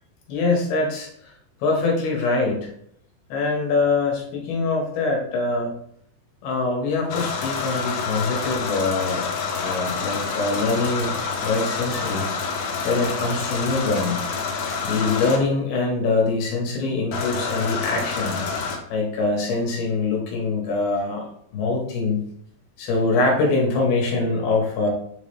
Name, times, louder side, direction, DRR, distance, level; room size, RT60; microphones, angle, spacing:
voice 1, 0.3-1.1 1.6-2.7 3.3-5.7 6.4-9.2 9.6-11.1 11.4-12.3 12.8-14.2 14.8-18.4 18.9-22.2 22.8-24.9, left 3 dB, 70° left, -1 dB, 3.3 m, -23 dB
sound 1, 7.1-15.4 17.1-18.8, left 5 dB, 85° left, 3.2 m, -28 dB
7.8 x 3.7 x 3.3 m, 0.67 s
omnidirectional pair, 4.8 m